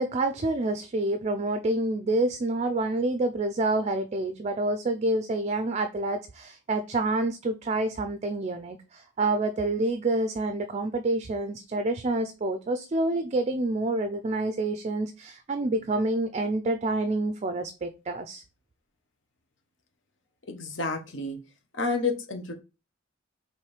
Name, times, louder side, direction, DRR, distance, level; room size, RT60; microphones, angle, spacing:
voice 1, 0.0-18.4, right 2 dB, 35° right, 9 dB, 0.4 m, -28 dB
voice 2, 20.5-21.4 21.7-22.5, left 3 dB, 70° left, 5 dB, 1.0 m, -30 dB
4.5 x 3.1 x 3.3 m, 0.29 s
head